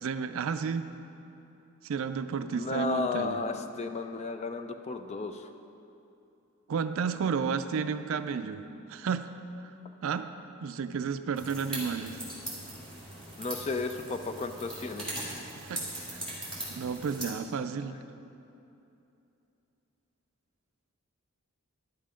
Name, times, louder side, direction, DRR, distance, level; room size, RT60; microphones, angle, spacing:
voice 1, 0.0-0.9 1.8-3.4 6.7-9.3 10.0-10.3 10.6-12.2 15.6-16.2 16.7-18.0, right 6 dB, 65° right, 10 dB, 0.4 m, -32 dB
voice 2, 2.5-5.5 13.4-15.4, left 3 dB, 30° left, 7 dB, 0.4 m, -34 dB
sound 1, 11.3-17.3, right 1 dB, 5° left, 2.4 m, -40 dB
11.5 x 5.5 x 5.0 m, 2.8 s
head